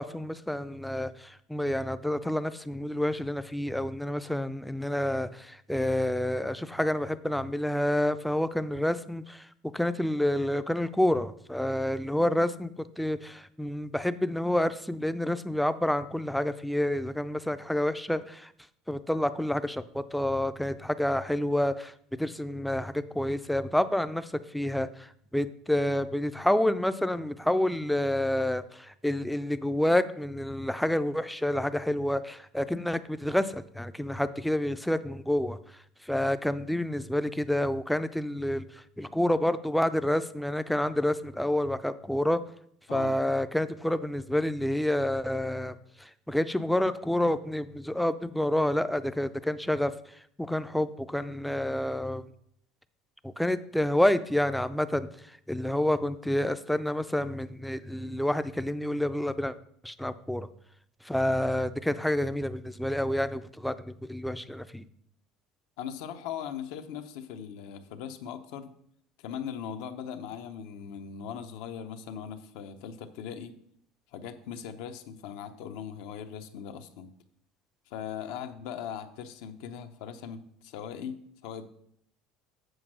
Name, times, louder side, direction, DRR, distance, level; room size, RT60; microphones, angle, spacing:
voice 1, 0.0-9.5 9.7-18.5 18.9-42.4 42.9-52.2 53.2-59.5 59.8-60.5 61.0-64.8, left 1 dB, ahead, 13 dB, 0.4 m, -29 dB
voice 2, 65.8-68.7 69.2-73.6 74.1-77.1 77.9-81.7, left 8 dB, 75° left, 8 dB, 0.7 m, -39 dB
7.9 x 4.4 x 6.1 m, 0.68 s
supercardioid pair, 130°, 0 cm